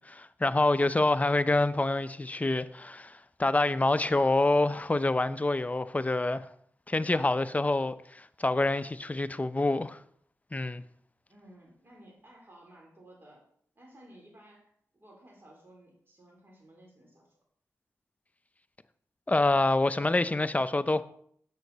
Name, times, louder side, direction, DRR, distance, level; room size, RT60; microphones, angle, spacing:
voice 1, 0.1-6.5 6.9-10.0 10.5-10.8 19.3-21.0, left 2 dB, 25° left, 0.5 m, -26 dB
voice 2, 11.3-13.4 13.8-17.4, right 1 dB, 40° right, 3.5 m, -55 dB
7.3 x 6.4 x 4.0 m
cardioid pair, 50°, 6 cm